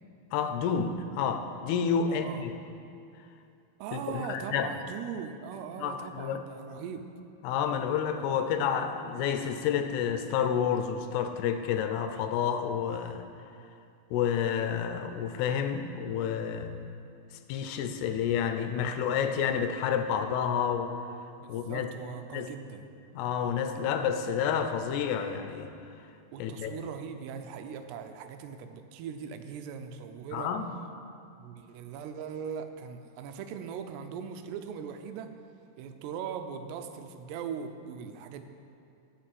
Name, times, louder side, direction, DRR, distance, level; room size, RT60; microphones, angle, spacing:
voice 1, 0.3-2.5 3.9-4.7 5.8-6.4 7.4-13.2 14.1-16.8 17.5-20.9 21.5-21.9 22.3-22.5 23.1-25.7 26.4-26.8 30.3-30.7, left 7 dB, 80° left, 7 dB, 2.7 m, -29 dB
voice 2, 2.1-2.4 3.8-7.0 21.4-22.9 26.3-30.5 31.4-35.3 35.8-38.4, right 7 dB, 85° right, 7 dB, 2.8 m, -40 dB
13.0 x 6.1 x 7.5 m, 2.6 s
omnidirectional pair, 4.8 m